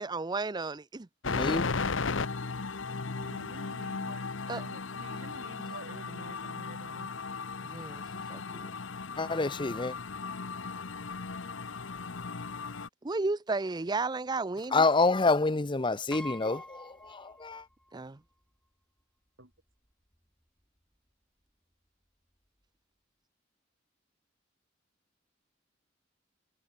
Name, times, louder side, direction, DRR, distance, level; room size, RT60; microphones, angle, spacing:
voice 1, 0.0-1.4 4.5-4.6 7.7-8.7 13.0-14.8 17.9-18.2, right 3 dB, 20° right, 0.5 m, -34 dB
sound 1, 1.2-12.9, left 4 dB, 70° left, 1.0 m, -36 dB
voice 2, 1.3-1.7 9.2-9.9 14.7-17.7, left 3 dB, 25° left, 0.7 m, -27 dB
voice 3, 3.2-7.1 19.4-19.5, right 2 dB, 70° right, 5.2 m, -49 dB
Piano, 16.1-17.9 18.3-18.4 19.5-19.6 19.9-20.2, left 1 dB, 5° left, 5.7 m, -46 dB
head